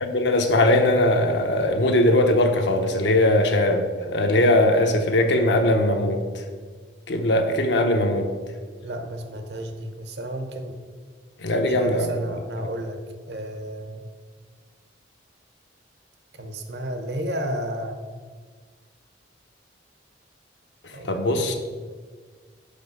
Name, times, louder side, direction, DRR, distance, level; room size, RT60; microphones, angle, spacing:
voice 1, 0.0-6.4 7.1-8.3 11.4-12.1 21.0-21.6, left 1 dB, 75° left, 5 dB, 0.8 m, -20 dB
voice 2, 8.8-10.8 11.7-13.0 13.3-14.0 16.4-18.0 20.9-21.6, right 1 dB, 70° right, 7 dB, 0.8 m, -32 dB
5.6 x 5.2 x 5.4 m, 1.5 s
head